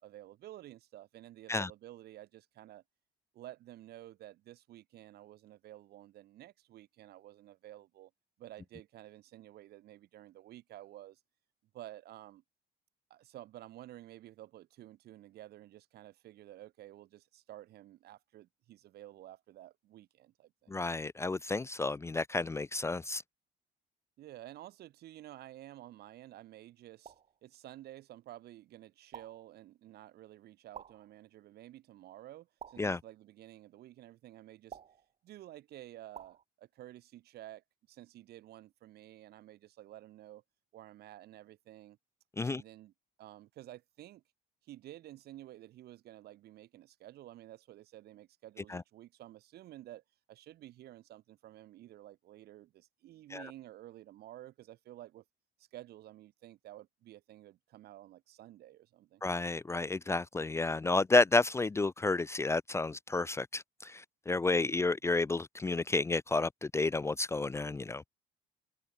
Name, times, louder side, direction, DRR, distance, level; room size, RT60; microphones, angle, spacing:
voice 1, 0.0-2.8 3.3-8.1 8.4-11.2 11.7-12.4 13.1-20.8 24.2-27.1 27.4-34.8 35.2-40.4 40.7-42.0 42.4-42.9 43.2-44.2 44.6-55.2 55.6-59.2 64.5-64.8, right 14 dB, 70° right, 2.7 m, -52 dB
voice 2, 20.7-23.2 32.8-33.0 42.4-42.6 48.7-48.8 53.3-53.4 59.2-68.0, left 3 dB, 15° left, 0.5 m, -31 dB
sound 1, 27.1-27.4 29.1-29.5 30.7-31.2 32.6-33.0 34.7-35.1 36.2-36.4, right 7 dB, 40° right, 2.3 m, -50 dB
cardioid pair, 110°, 17 cm